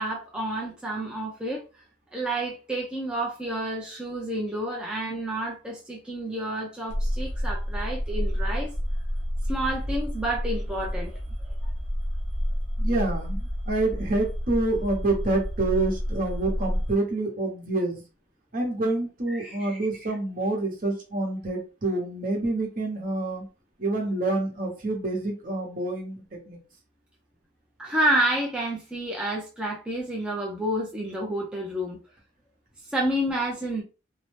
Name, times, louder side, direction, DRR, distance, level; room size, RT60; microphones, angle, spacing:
voice 1, 0.0-1.6 2.1-8.7 9.5-11.2 11.6-11.7 19.3-19.8 27.8-32.0 32.9-33.8, right 1 dB, 5° right, 0.5 m, -29 dB
sound 1, 6.9-16.9, equal, 80° right, 0.9 m, -29 dB
voice 2, 12.8-18.0 18.5-23.4 23.8-26.2 26.5-26.6, right 2 dB, 45° right, 1.0 m, -27 dB
2.6 x 2.1 x 3.1 m
head